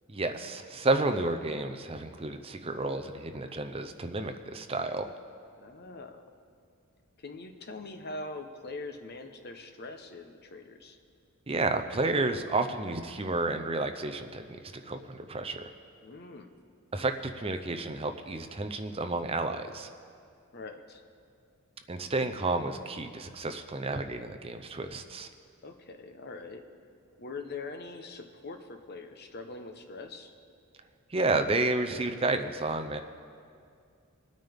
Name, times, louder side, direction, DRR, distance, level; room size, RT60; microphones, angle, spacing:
voice 1, 0.1-5.1 11.5-14.6 14.9-15.7 16.9-19.9 21.9-25.3 31.1-33.0, right 2 dB, 25° right, 7 dB, 0.6 m, -31 dB
voice 2, 5.6-6.3 7.2-11.0 16.0-16.5 20.5-21.0 25.6-26.6 27.2-30.3, left 3 dB, 50° left, 5 dB, 1.0 m, -43 dB
22.0 x 9.2 x 3.6 m, 2.3 s
head